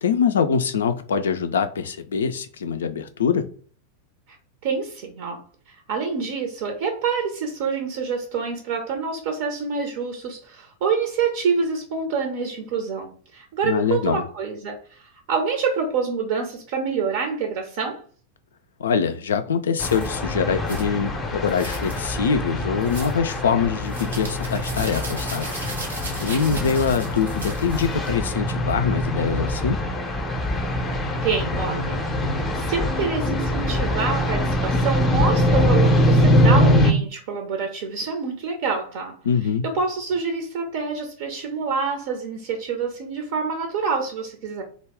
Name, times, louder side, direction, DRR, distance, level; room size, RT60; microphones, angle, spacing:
voice 1, 0.0-3.5 13.6-14.2 18.8-25.5 26.2-29.8 39.2-39.6, left 6 dB, 65° left, 9 dB, 0.3 m, -23 dB
voice 2, 4.6-5.4 5.7-18.0 26.5-26.7 30.8-32.0 32.3-39.2 39.6-44.6, right 5 dB, 50° right, 3 dB, 0.6 m, -27 dB
sound 1, 19.8-36.9, left 1 dB, 15° left, 0.6 m, -23 dB
Garlic cloves, 19.8-20.1 20.7-20.9 21.5-22.0 22.8-23.2 23.9-28.1, right 2 dB, 80° right, 0.9 m, -37 dB
2.3 x 2.0 x 3.4 m, 0.42 s
figure-of-eight pair, 90°, 0 cm